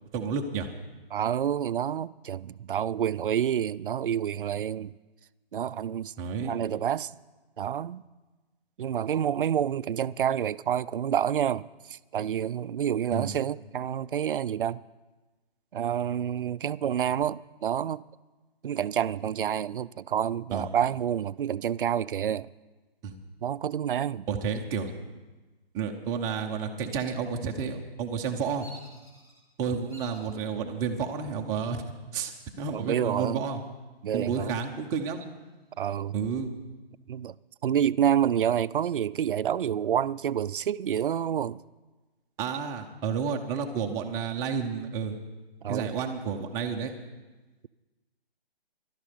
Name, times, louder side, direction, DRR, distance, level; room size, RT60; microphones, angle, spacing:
voice 1, 0.1-0.7 6.2-6.6 13.1-13.3 20.5-20.6 23.0-23.1 24.3-24.9 25.7-28.7 29.6-31.8 32.1-33.6 34.1-35.2 36.1-36.5 42.4-45.2 45.7-46.9, right 6 dB, 10° right, 0.7 m, -31 dB
voice 2, 1.1-4.9 5.5-6.1 6.5-7.1 7.6-8.0 8.8-14.8 15.7-18.0 18.6-22.5 23.4-24.3 32.7-33.5 34.0-34.6 35.8-36.2 37.1-37.3 37.6-41.6 45.6-45.9, right 9 dB, 60° right, 0.5 m, -28 dB
Bird vocalization bird call bird song, 28.6-29.4 29.9-30.3 30.9-31.4 32.6-33.3 33.7-33.8 34.3-35.7, right 1 dB, 10° left, 3.4 m, -52 dB
18.0 x 12.5 x 5.2 m
figure-of-eight pair, 145°, 31 cm